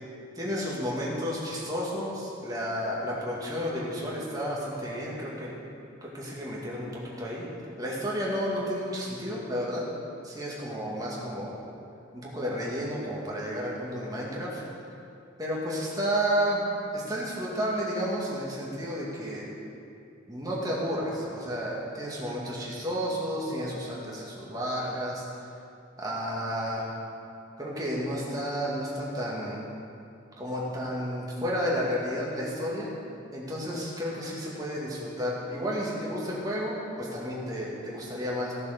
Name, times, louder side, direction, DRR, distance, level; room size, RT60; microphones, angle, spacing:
voice 1, 0.4-5.6 6.0-7.5 7.8-9.9 10.2-11.6 12.1-14.6 15.4-16.6 16.9-19.5 20.3-25.2 26.0-26.9 27.6-29.6 30.4-32.9 33.3-38.5, equal, 20° right, -5 dB, 2.2 m, -31 dB
15.0 x 6.8 x 6.7 m, 2.6 s
head